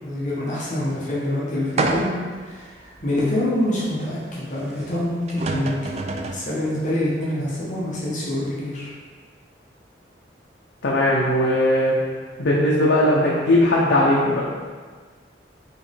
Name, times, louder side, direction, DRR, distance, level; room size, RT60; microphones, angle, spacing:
voice 1, 0.0-2.1 2.4-5.8 6.3-8.9, left 1 dB, 45° left, -7 dB, 1.0 m, -26 dB
sound 1, 1.8-2.4 3.0-3.1 4.9-5.0 5.3-6.5, right 3 dB, 35° right, 0.3 m, -26 dB
voice 2, 10.8-12.0 12.4-14.4, left 1 dB, 85° left, -5 dB, 0.6 m, -18 dB
4.9 x 3.1 x 3.4 m, 1.5 s
head